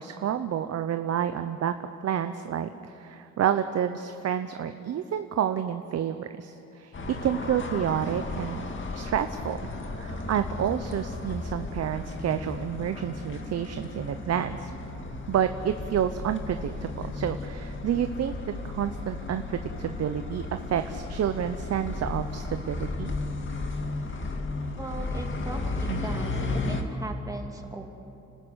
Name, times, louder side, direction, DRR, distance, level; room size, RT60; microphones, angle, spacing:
voice 1, 0.0-1.7 2.0-8.7 8.9-9.6 9.9-14.7 15.3-23.1 25.9-26.1, right 9 dB, 55° right, 9 dB, 0.9 m, -29 dB
sound 1, 6.9-26.8, left 2 dB, 40° left, 2.2 m, -34 dB
voice 2, 24.7-27.9, right 2 dB, 10° right, 2 dB, 2.7 m, -38 dB
29.5 x 13.0 x 8.2 m, 2.8 s
cardioid pair, 90°, 30 cm